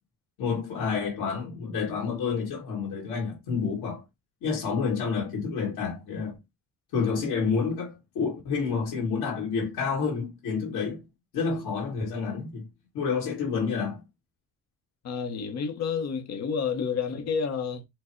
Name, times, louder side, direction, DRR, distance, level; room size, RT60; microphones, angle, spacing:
voice 1, 0.4-4.0 4.4-6.4 6.9-11.0 11.3-12.7 12.9-14.0, left 5 dB, 90° left, 1.6 m, -29 dB
voice 2, 15.0-17.9, left 6 dB, 45° left, 0.7 m, -30 dB
4.5 x 2.0 x 4.3 m
cardioid pair, 170°, 37 cm